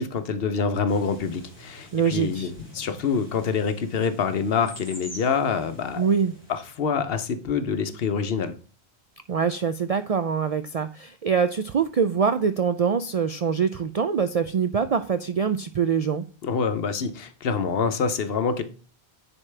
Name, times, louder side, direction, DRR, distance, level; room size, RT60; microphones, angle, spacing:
voice 1, 0.0-6.1 6.5-8.5 16.4-18.6, left 5 dB, 65° left, 0.9 m, -26 dB
sound 1, 0.9-6.7, equal, 10° left, 2.4 m, -46 dB
voice 2, 1.9-2.5 6.0-6.3 9.3-16.2, right 6 dB, 60° right, 0.4 m, -24 dB
9.8 x 4.5 x 3.3 m
omnidirectional pair, 1.1 m